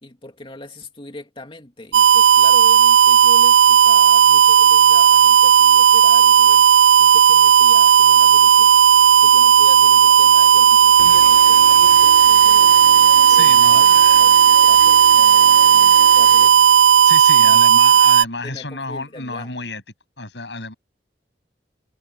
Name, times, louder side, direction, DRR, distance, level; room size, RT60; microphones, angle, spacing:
voice 1, 0.0-6.7 7.0-8.7 9.2-13.9 14.2-16.6 17.0-18.0 18.4-19.5, left 2 dB, 30° left, 2.6 m, -40 dB
sound 1, 1.9-18.2, right 8 dB, 75° right, 0.4 m, -12 dB
sound 2, 7.3-15.1, right 3 dB, 35° right, 3.4 m, -45 dB
sound 3, 11.0-17.2, left 5 dB, 60° left, 1.1 m, -34 dB
voice 2, 13.3-14.2 17.1-19.8 20.2-20.7, left 3 dB, 90° left, 7.4 m, -31 dB
head